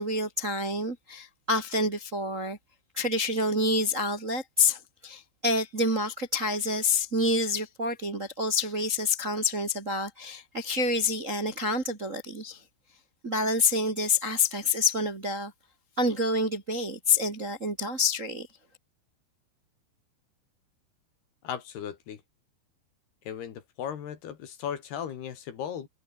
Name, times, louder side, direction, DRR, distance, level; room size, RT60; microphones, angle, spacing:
voice 1, 0.0-2.6 2.9-12.6 13.2-15.5 16.0-18.5, left 2 dB, 45° right, 1.0 m, -27 dB
voice 2, 21.4-22.2 23.3-25.9, left 9 dB, 60° left, 4.0 m, -36 dB
omnidirectional pair, 5.4 m